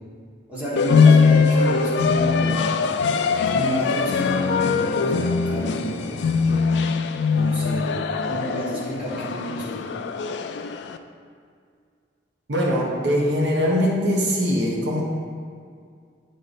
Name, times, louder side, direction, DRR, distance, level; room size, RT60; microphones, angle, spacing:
voice 1, 0.5-2.6 3.4-6.2 7.3-8.0 8.3-9.9, right 1 dB, 5° right, -9 dB, 1.5 m, -30 dB
sound 1, 0.8-11.0, left 5 dB, 70° left, 0.3 m, -21 dB
voice 2, 12.5-15.0, equal, 70° right, -2 dB, 0.9 m, -22 dB
8.9 x 3.2 x 4.1 m, 2.2 s
head